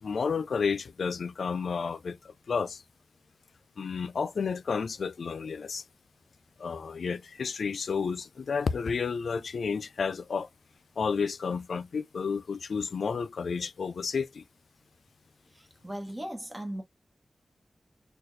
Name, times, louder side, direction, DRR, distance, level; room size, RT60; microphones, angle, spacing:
voice 1, 0.0-2.8 3.8-5.8 6.6-10.5 11.0-14.4, left 5 dB, 90° left, 0.3 m, -31 dB
voice 2, 15.5-16.8, right 1 dB, 15° right, 1.0 m, -38 dB
4.2 x 2.2 x 3.2 m
wide cardioid pair, 115°, 0 cm